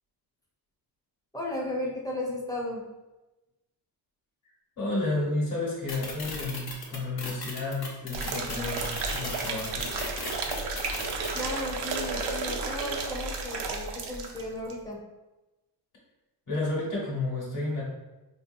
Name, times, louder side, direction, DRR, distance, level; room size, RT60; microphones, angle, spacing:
voice 1, 1.3-2.8 11.3-15.0, left 1 dB, 10° left, -3 dB, 0.6 m, -34 dB
voice 2, 4.8-10.0 16.5-17.8, left 2 dB, 50° left, -5 dB, 1.4 m, -31 dB
sound 1, 5.9-11.4, left 3 dB, 65° left, 0.9 m, -37 dB
sound 2, 8.1-14.4 14.7-14.8, right 4 dB, 85° right, 0.6 m, -33 dB
4.7 x 2.7 x 2.6 m, 1.1 s
wide cardioid pair, 155°, 40 cm